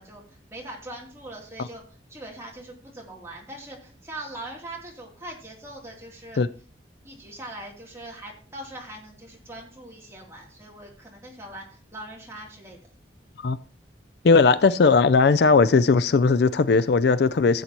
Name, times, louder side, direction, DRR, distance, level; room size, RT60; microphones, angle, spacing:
voice 1, 0.0-1.8 2.1-6.4 7.0-12.8, right 1 dB, 15° right, 2.9 m, -41 dB
voice 2, 14.2-17.6, left 4 dB, 60° left, 0.4 m, -18 dB
15.5 x 8.1 x 3.0 m
head